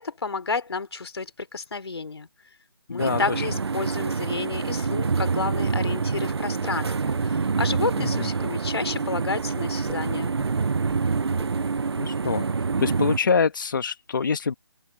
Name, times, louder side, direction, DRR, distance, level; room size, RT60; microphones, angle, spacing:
voice 1, 0.0-2.3 2.9-10.3, left 4 dB, 75° left, 3.4 m, -31 dB
voice 2, 2.9-3.5 8.0-8.3 12.0-12.4 12.8-14.5, left 5 dB, 50° left, 1.4 m, -25 dB
sound 1, 3.0-13.2, right 5 dB, 80° right, 0.8 m, -26 dB
sound 2, 5.9-11.8, right 6 dB, 5° right, 5.9 m, -50 dB
open air
hypercardioid pair, 175°, 13 cm